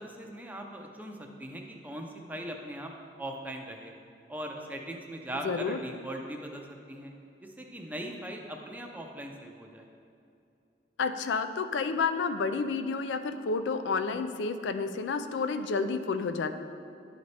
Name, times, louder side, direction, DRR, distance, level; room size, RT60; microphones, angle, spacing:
voice 1, 0.0-2.9 3.2-3.9 4.3-7.1 7.4-9.9, right 1 dB, 10° right, 2 dB, 0.5 m, -40 dB
voice 2, 5.4-5.8 11.0-16.6, left 4 dB, 80° left, 9 dB, 0.4 m, -30 dB
11.0 x 4.0 x 3.3 m, 2.6 s
head